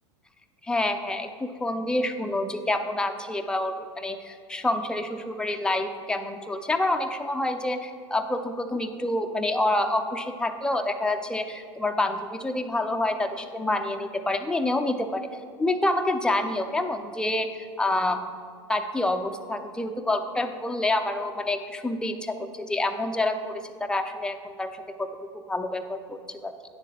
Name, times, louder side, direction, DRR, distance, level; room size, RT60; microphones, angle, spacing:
voice 1, 0.6-15.3 15.6-18.2 18.7-24.7 25.0-25.1 25.3-26.5, left 2 dB, 5° left, 6 dB, 0.6 m, -27 dB
9.8 x 7.0 x 4.2 m, 2.2 s
hypercardioid pair, 100°, 15 cm